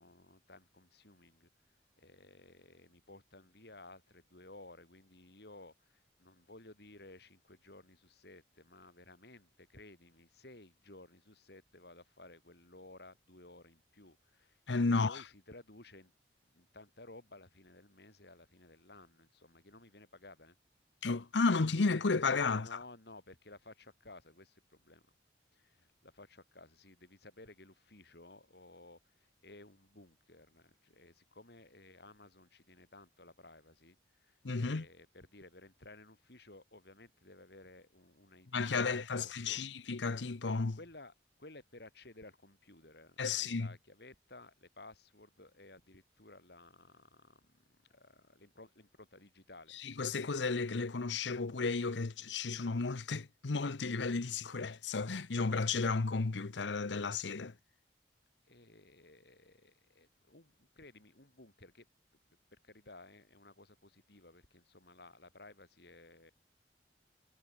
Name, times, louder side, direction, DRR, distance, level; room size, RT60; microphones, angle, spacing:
voice 1, 0.0-14.6 15.0-16.1 16.5-20.6 22.5-25.0 25.5-39.6 40.8-41.1 41.4-49.8 58.5-61.9 62.6-66.3, left 2 dB, 65° left, 3.6 m, -56 dB
voice 2, 14.7-15.2 21.0-22.8 34.4-34.8 38.5-40.8 43.2-43.7 49.8-57.5, left 4 dB, 85° left, 0.8 m, -33 dB
head